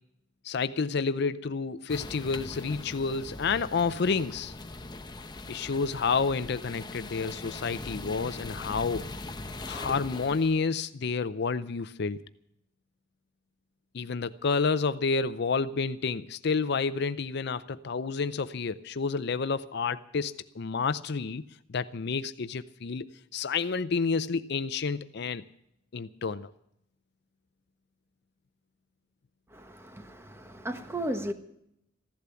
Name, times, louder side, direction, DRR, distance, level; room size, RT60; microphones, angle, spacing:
voice 1, 0.4-4.5 5.5-9.1 9.6-12.2 13.9-21.4 21.7-25.4 25.9-26.5, left 4 dB, 60° left, 0.6 m, -30 dB
sound 1, 1.9-10.6, left 2 dB, 20° left, 0.9 m, -41 dB
voice 2, 29.5-31.3, right 1 dB, 15° right, 1.2 m, -35 dB
15.5 x 12.0 x 6.9 m
head